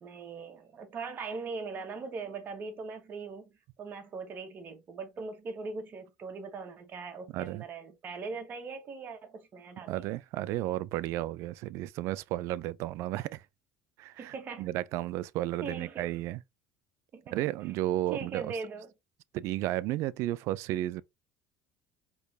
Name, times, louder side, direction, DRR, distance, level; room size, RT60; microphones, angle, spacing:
voice 1, 0.0-3.5 3.8-10.2 14.2-14.7 15.6-16.2 17.1-17.3 17.6-17.7 18.1-18.9, right 4 dB, 40° right, 1.5 m, -40 dB
voice 2, 7.3-7.6 9.9-13.4 14.0-16.4 17.3-18.5 19.3-21.0, right 15 dB, 65° right, 0.4 m, -33 dB
4.4 x 3.3 x 2.7 m
supercardioid pair, 100°, 5 cm